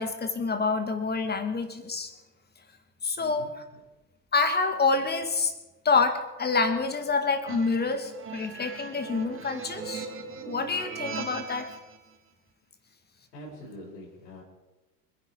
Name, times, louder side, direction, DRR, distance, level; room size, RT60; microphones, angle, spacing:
voice 1, 0.0-2.1 3.0-3.5 4.3-5.5 5.8-10.1 10.5-11.7, left 4 dB, 20° left, 7 dB, 2.6 m, -27 dB
voice 2, 3.2-3.8 13.3-14.4, left 1 dB, 80° left, -8 dB, 6.4 m, -45 dB
sound 1, 7.5-12.0, right 6 dB, 25° right, 2.4 m, -39 dB
27.0 x 11.0 x 4.8 m, 1.1 s
figure-of-eight pair, 85°, 47 cm